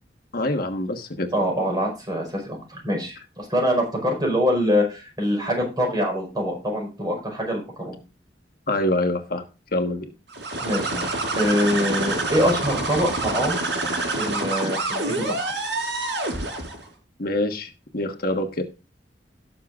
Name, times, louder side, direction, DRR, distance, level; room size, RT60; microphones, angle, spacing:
voice 1, 0.3-1.3 8.7-9.4 9.7-10.0 17.2-18.6, left 1 dB, 60° left, 4 dB, 1.4 m, -25 dB
voice 2, 1.3-8.0 10.6-11.1 11.4-13.6 14.2-15.5, equal, 25° right, 0 dB, 5.0 m, -24 dB
sound 1, 10.3-16.9, right 2 dB, 85° right, 4.2 m, -27 dB
18.0 x 6.8 x 2.5 m, 0.30 s
head